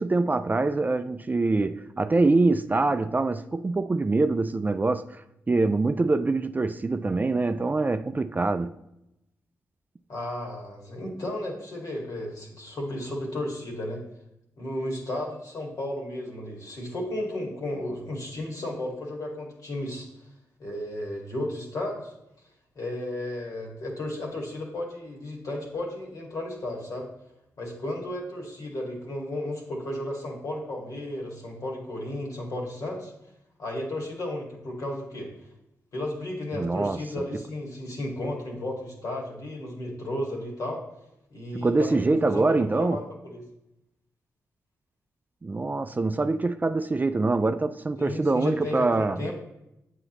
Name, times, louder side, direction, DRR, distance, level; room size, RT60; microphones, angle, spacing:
voice 1, 0.0-5.1 5.5-8.7 36.5-37.0 41.5-43.0 45.4-49.3, right 3 dB, 25° right, 0.3 m, -24 dB
voice 2, 10.1-14.0 14.6-20.1 20.6-22.1 22.8-27.1 27.6-33.1 33.6-35.3 35.9-40.8 41.3-43.4 48.0-49.3, left 1 dB, 60° left, 1.9 m, -33 dB
7.9 x 4.9 x 3.0 m
supercardioid pair, 45°, 6 cm